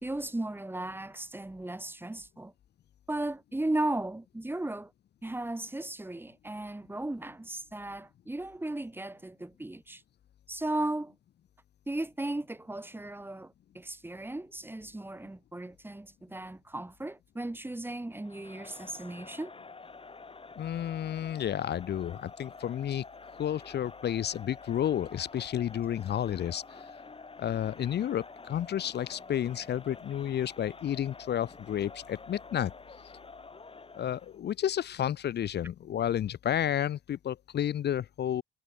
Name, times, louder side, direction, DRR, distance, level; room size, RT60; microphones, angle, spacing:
voice 1, 0.0-2.5 3.1-4.9 5.2-10.0 10.5-11.2 11.9-19.5, right 2 dB, 10° right, 2.0 m, -36 dB
Crowd, 18.2-34.4, left 4 dB, 25° left, 7.2 m, -49 dB
voice 2, 20.6-23.0 23.4-26.8 27.4-32.7 34.0-38.4, left 10 dB, 60° left, 0.9 m, -31 dB
cardioid pair, 90°, 20 cm